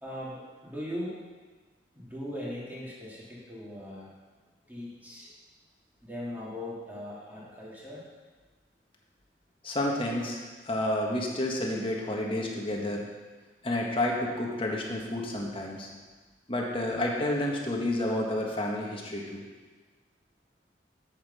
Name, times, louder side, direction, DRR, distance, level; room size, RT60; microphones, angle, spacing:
voice 1, 0.0-1.2 1.9-4.1 4.7-5.3 6.0-8.0, left 1 dB, 10° right, -7 dB, 3.1 m, -39 dB
voice 2, 9.6-10.4 10.7-13.1 13.6-15.9 16.5-19.4, left 1 dB, 30° left, -1 dB, 1.6 m, -30 dB
8.6 x 8.2 x 5.6 m, 1.4 s
head